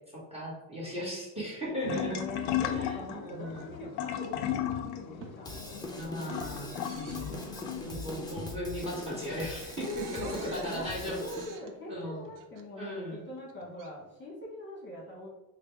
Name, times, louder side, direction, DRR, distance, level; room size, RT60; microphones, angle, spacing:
voice 1, 0.0-2.2 2.7-3.7 5.9-7.5 7.8-11.2 11.9-12.3 12.7-13.2, equal, 15° right, -4 dB, 1.2 m, -37 dB
sound 1, 1.8-7.8, left 11 dB, 65° left, 0.5 m, -35 dB
voice 2, 1.9-6.7 7.8-8.5 9.8-10.9 11.2-15.3, left 1 dB, 30° left, -4 dB, 1.1 m, -42 dB
sound 2, 2.3-2.5 3.4-3.6 4.2-4.3 4.7-5.4 5.8-6.2 6.6-7.7 8.4-8.7 9.0-9.1 9.3-12.6 13.4-13.9, right 5 dB, 50° right, 0.6 m, -50 dB
Drum kit / Drum, 5.4-11.4, left 2 dB, 10° left, 0.5 m, -41 dB
5.0 x 2.1 x 3.4 m, 0.96 s
cardioid pair, 135°, 40 cm